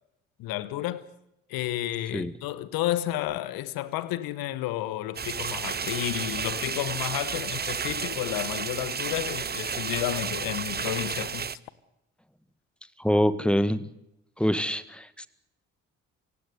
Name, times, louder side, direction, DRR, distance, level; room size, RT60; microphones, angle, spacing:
voice 1, 0.4-1.0 1.5-11.5, left 14 dB, 70° left, 1.3 m, -31 dB
sound 1, 5.1-11.6, right 6 dB, 25° right, 0.8 m, -32 dB
voice 2, 13.0-13.9 14.4-15.3, equal, 5° left, 1.8 m, -25 dB
26.5 x 17.0 x 9.4 m
hypercardioid pair, 45°, 37 cm